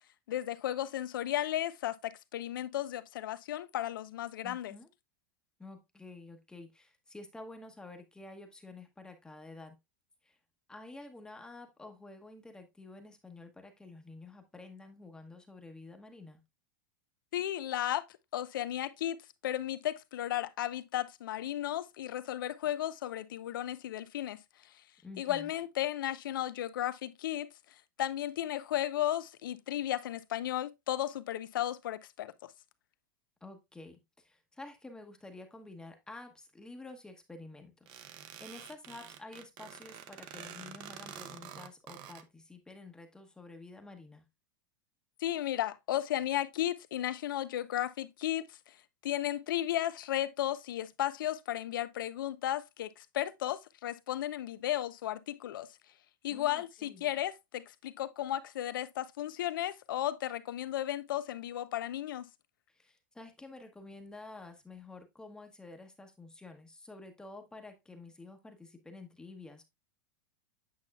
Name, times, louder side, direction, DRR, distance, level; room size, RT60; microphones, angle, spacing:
voice 1, 0.3-4.7 17.3-18.0 18.3-24.4 25.2-27.5 28.0-32.5 45.2-48.7 49.0-55.7 56.2-62.3, left 12 dB, 85° left, 0.7 m, -34 dB
voice 2, 4.4-4.9 5.6-9.8 10.2-10.4 10.7-16.4 25.0-25.5 33.4-38.0 38.4-44.3 56.3-57.0 62.7-69.6, left 2 dB, 5° left, 1.0 m, -50 dB
sound 1, 37.9-42.2, right 10 dB, 45° right, 0.8 m, -48 dB
8.7 x 5.6 x 2.3 m
supercardioid pair, 140°, 11 cm